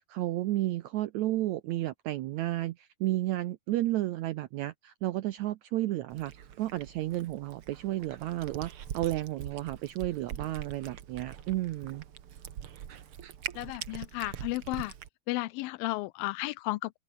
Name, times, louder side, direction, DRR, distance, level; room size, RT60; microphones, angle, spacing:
voice 1, 0.1-6.3 6.6-12.0, right 16 dB, 80° right, 1.7 m, -32 dB
Cat, 6.1-15.1, right 9 dB, 55° right, 1.7 m, -43 dB
voice 2, 13.6-14.9 15.3-17.0, left 20 dB, 90° left, 2.4 m, -33 dB
open air
omnidirectional pair, 4.1 m